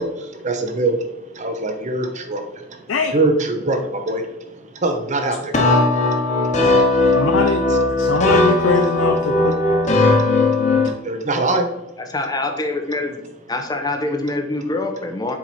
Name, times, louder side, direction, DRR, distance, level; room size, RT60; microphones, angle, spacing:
voice 1, 0.0-7.2 7.8-8.0 10.2-11.7, right 2 dB, 40° right, 5 dB, 0.9 m, -25 dB
voice 2, 2.9-3.2 7.1-7.6 8.0-9.5, left 4 dB, 75° left, 5 dB, 0.6 m, -21 dB
sound 1, 5.5-10.9, left 2 dB, 40° left, 1.2 m, -17 dB
voice 3, 12.0-13.2 13.5-15.4, left 2 dB, 20° left, 5 dB, 0.9 m, -24 dB
7.5 x 4.6 x 4.2 m, 0.88 s
head